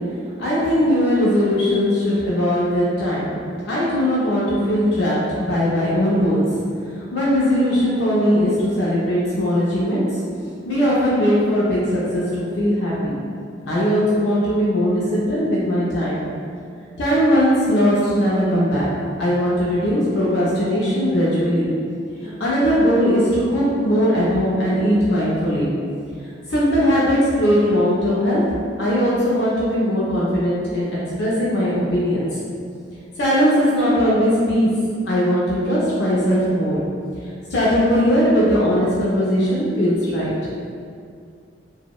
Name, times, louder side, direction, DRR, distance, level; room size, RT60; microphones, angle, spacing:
voice 1, 0.4-3.4 3.6-6.5 6.9-10.0 10.7-13.1 13.6-16.3 17.0-18.9 19.2-21.8 22.2-25.7 26.5-28.4 28.8-32.3 33.2-34.7 35.1-36.8 37.5-40.6, equal, 65° left, -7 dB, 0.4 m, -19 dB
2.7 x 2.0 x 2.2 m, 2.3 s
head